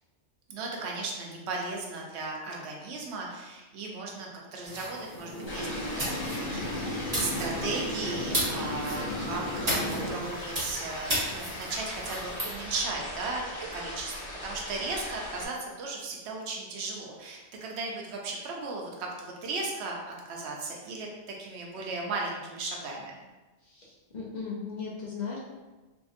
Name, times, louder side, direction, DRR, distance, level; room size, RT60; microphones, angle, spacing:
voice 1, 0.5-5.8 6.1-13.4 13.7-21.1 21.4-23.2, right 3 dB, 75° right, -1 dB, 0.8 m, -36 dB
sound 1, 4.6-12.5, right 1 dB, 35° right, 1.0 m, -36 dB
sound 2, 5.1-10.1, left 1 dB, 85° left, 1.1 m, -35 dB
sound 3, 5.5-15.5, left 1 dB, 15° right, 0.7 m, -39 dB
voice 2, 23.6-25.4, left 5 dB, 50° left, -4 dB, 0.6 m, -37 dB
2.8 x 2.6 x 2.4 m, 1.2 s
omnidirectional pair, 1.2 m